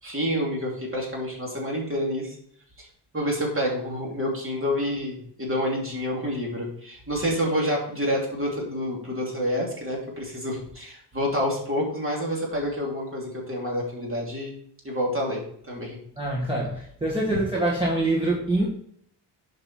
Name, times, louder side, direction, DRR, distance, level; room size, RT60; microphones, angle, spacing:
voice 1, 0.0-2.4 2.8-2.9 3.1-14.6 14.8-16.0, equal, 30° right, -2 dB, 2.9 m, -28 dB
voice 2, 16.2-18.7, right 1 dB, 10° right, -4 dB, 1.6 m, -25 dB
8.0 x 5.4 x 4.3 m, 0.65 s
wide cardioid pair, 130°, 43 cm